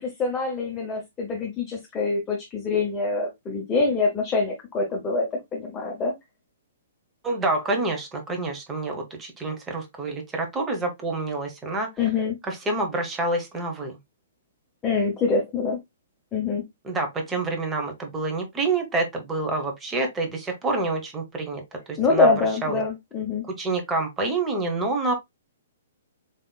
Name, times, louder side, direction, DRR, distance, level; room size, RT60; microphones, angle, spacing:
voice 1, 0.0-6.1 12.0-12.4 14.8-15.8 16.3-16.6 22.0-23.4, left 3 dB, 20° left, 0.9 m, -25 dB
voice 2, 7.2-11.9 12.4-14.0 16.8-21.6 21.9-22.3 22.6-22.8 23.6-25.1, right 3 dB, 15° right, 1.1 m, -27 dB
4.1 x 3.4 x 2.3 m
figure-of-eight pair, 120°, 0 cm